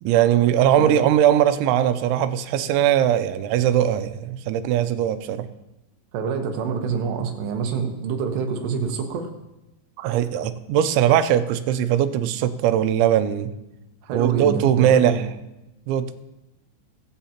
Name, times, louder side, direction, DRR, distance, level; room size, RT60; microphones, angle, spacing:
voice 1, 0.0-5.5 10.0-13.5 14.1-15.2 15.9-16.2, right 10 dB, 90° right, 11 dB, 3.0 m, -20 dB
voice 2, 6.1-9.3 14.0-15.3, right 5 dB, 75° right, 3 dB, 3.1 m, -26 dB
22.5 x 7.9 x 2.9 m, 0.95 s
omnidirectional pair, 5.2 m